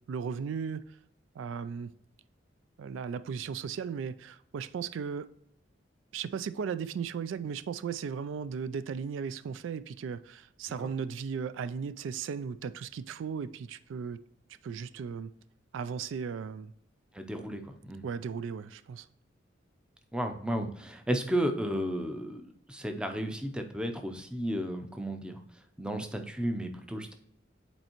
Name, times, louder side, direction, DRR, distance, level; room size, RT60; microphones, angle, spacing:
voice 1, 0.1-1.0 1.4-1.9 2.8-5.3 6.1-14.2 14.6-15.3 15.7-16.7 18.0-19.1, right 6 dB, 80° right, 0.3 m, -36 dB
voice 2, 17.1-18.0 20.1-25.4 25.8-27.1, equal, 5° right, 0.5 m, -33 dB
8.0 x 4.3 x 2.9 m
head